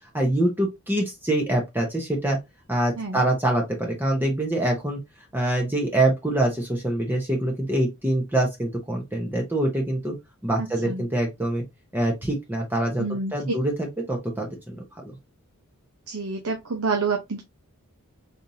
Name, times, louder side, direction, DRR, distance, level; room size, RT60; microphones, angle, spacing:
voice 1, 0.1-2.4 2.7-5.0 5.3-10.1 10.4-11.6 11.9-13.0 13.3-15.2, right 1 dB, 10° right, 0.8 m, -25 dB
voice 2, 10.6-11.0 13.0-13.3 16.1-17.4, right 4 dB, 80° right, 0.8 m, -28 dB
4.1 x 3.4 x 2.7 m
head